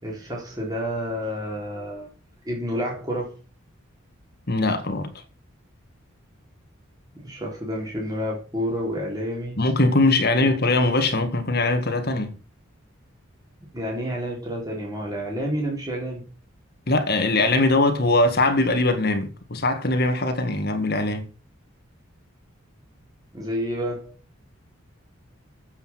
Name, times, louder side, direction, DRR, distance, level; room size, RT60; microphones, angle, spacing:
voice 1, 0.0-2.1 2.4-3.4 7.2-9.6 10.4-10.5 13.7-16.3 23.3-24.1, equal, 20° right, 3.8 m, -29 dB
voice 2, 4.5-5.1 9.6-12.4 16.9-21.3, left 2 dB, 45° left, 1.8 m, -21 dB
8.4 x 8.0 x 5.9 m
head